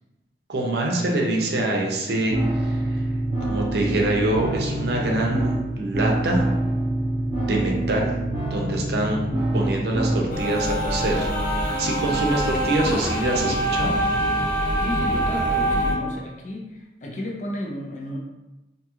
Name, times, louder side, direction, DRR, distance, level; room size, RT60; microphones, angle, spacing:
voice 1, 0.5-3.1 3.4-6.4 7.4-8.2 8.4-11.3 11.8-14.0, right 1 dB, 65° right, 0 dB, 0.5 m, -25 dB
sound 1, 2.3-10.3, right 1 dB, 30° right, 0.8 m, -26 dB
sound 2, 10.3-16.0, right 1 dB, 85° left, 0.8 m, -24 dB
voice 2, 14.8-18.2, left 1 dB, 45° left, 0 dB, 0.4 m, -32 dB
2.7 x 2.3 x 2.9 m, 1.0 s
head